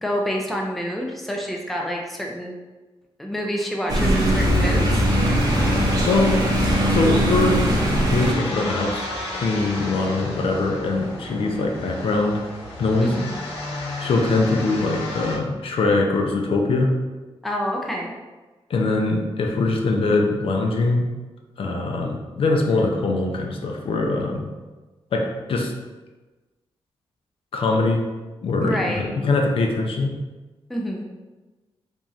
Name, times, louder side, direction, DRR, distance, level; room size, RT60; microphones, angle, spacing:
voice 1, 0.0-2.5 3.2-5.3 13.0-13.4 17.4-18.1 28.6-29.1 30.7-31.0, equal, ahead, 0 dB, 0.4 m, -27 dB
sound 1, 3.9-8.3, equal, 40° right, 0.6 m, -20 dB
sound 2, 4.5-15.4, left 2 dB, 80° left, 1.1 m, -34 dB
voice 2, 6.1-6.5 6.8-7.7 8.0-12.4 12.8-13.1 14.0-16.9 18.7-21.1 21.6-24.5 25.1-25.7 27.5-28.0 28.4-30.2, left 3 dB, 65° left, 2 dB, 0.5 m, -22 dB
3.6 x 3.0 x 2.6 m, 1.2 s
wide cardioid pair, 165°, 10 cm